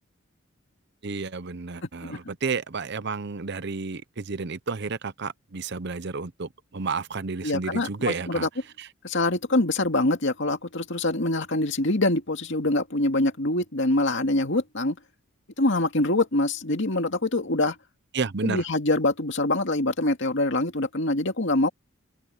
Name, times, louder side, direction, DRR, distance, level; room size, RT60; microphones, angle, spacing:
voice 1, 1.0-8.5 8.8-8.9 18.1-18.6, right 4 dB, 55° right, 0.8 m, -31 dB
voice 2, 7.4-8.5 9.0-15.0 15.6-17.8 18.4-21.7, left 2 dB, 60° left, 2.5 m, -24 dB
open air
head